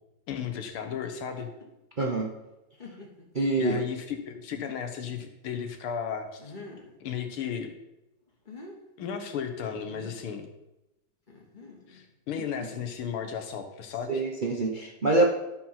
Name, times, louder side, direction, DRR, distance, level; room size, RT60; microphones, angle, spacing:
voice 1, 0.3-1.5 3.6-6.5 7.0-7.7 9.0-10.5 11.9-14.2, left 7 dB, 90° left, 6 dB, 2.0 m, -34 dB
sound 1, 1.3-1.7 2.3-2.4 2.8-3.4 4.0-4.1 6.4-7.0 8.3-8.7 9.9-10.3 11.3-12.1, left 3 dB, 25° left, 1.4 m, -46 dB
voice 2, 2.0-2.3 3.3-3.8 14.1-15.3, right 2 dB, 45° right, 0 dB, 0.6 m, -25 dB
12.5 x 4.7 x 5.7 m, 0.95 s
omnidirectional pair, 2.3 m